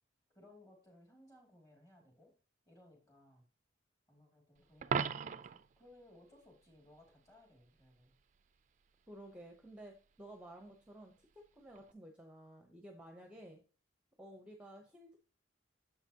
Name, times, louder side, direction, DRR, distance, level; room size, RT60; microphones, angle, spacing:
voice 1, 0.3-2.3 2.7-3.5 4.1-8.2, left 1 dB, 15° left, 1 dB, 2.5 m, -62 dB
Coin (dropping), 4.8-5.7 11.7-11.9, right 6 dB, 40° right, 0.4 m, -36 dB
voice 2, 9.1-13.6 14.2-15.2, right 1 dB, 5° right, 3 dB, 0.8 m, -53 dB
9.7 x 7.1 x 2.8 m, 0.37 s
head